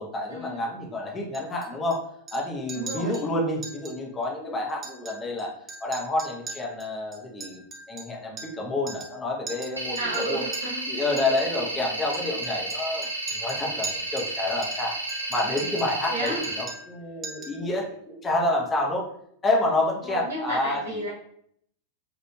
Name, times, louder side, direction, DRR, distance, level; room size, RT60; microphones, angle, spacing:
voice 1, 0.0-2.0 2.3-5.5 5.8-10.5 10.9-15.0 15.3-19.0 19.4-21.0, left 2 dB, 20° left, -1 dB, 0.6 m, -29 dB
Chink clink, 1.3-2.0 2.3-2.4 2.7-3.3 3.6-4.0 4.2-4.3 4.7-5.4 5.7-8.6 8.9-9.2 9.5-10.6 11.2-11.5 12.1-14.3 14.6-15.9 16.3-17.0 17.2-17.6, right 3 dB, 20° right, 0.5 m, -40 dB
voice 2, 2.7-3.2 10.0-10.9 16.1-16.5 20.0-21.1, right 1 dB, 70° right, -5 dB, 1.1 m, -32 dB
sound 1, 9.8-16.6, right 2 dB, 85° right, 0.6 m, -32 dB
3.0 x 2.4 x 2.2 m, 0.68 s
figure-of-eight pair, 90°, 0 cm